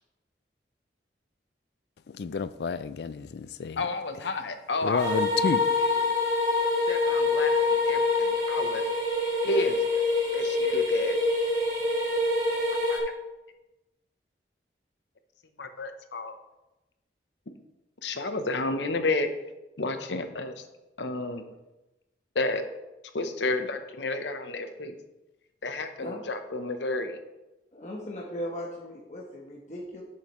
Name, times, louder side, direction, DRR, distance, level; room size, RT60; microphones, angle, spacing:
voice 1, 2.1-3.8 4.8-5.6, left 5 dB, 70° left, 0.4 m, -30 dB
voice 2, 3.8-5.0 5.8-6.1 6.9-8.8 9.4-10.0 10.3-11.2 12.9-13.0 15.6-16.4 18.0-19.3 19.8-20.6 21.0-21.4 22.3-22.7 23.1-25.0 25.6-27.2, left 2 dB, 90° left, 0.9 m, -31 dB
sound 1, 5.0-13.0, left 3 dB, 45° right, 2.4 m, -25 dB
voice 3, 27.7-30.0, equal, 40° left, 1.1 m, -38 dB
10.5 x 7.4 x 3.1 m
head